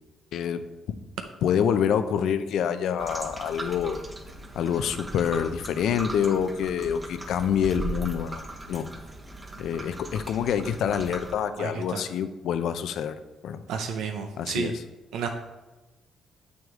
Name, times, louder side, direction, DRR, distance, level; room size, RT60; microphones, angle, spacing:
voice 1, 0.3-0.6 1.4-4.0 4.5-8.9 9.6-13.2 13.4-13.6 14.4-14.7, left 8 dB, 75° left, 11 dB, 0.5 m, -26 dB
sound 1, 3.0-11.3, right 2 dB, 20° right, 1.0 m, -38 dB
voice 2, 11.6-12.0 13.7-14.7 15.1-15.3, right 6 dB, 85° right, 5 dB, 0.6 m, -31 dB
7.1 x 6.2 x 3.7 m, 1.1 s
cardioid pair, 90°, 0 cm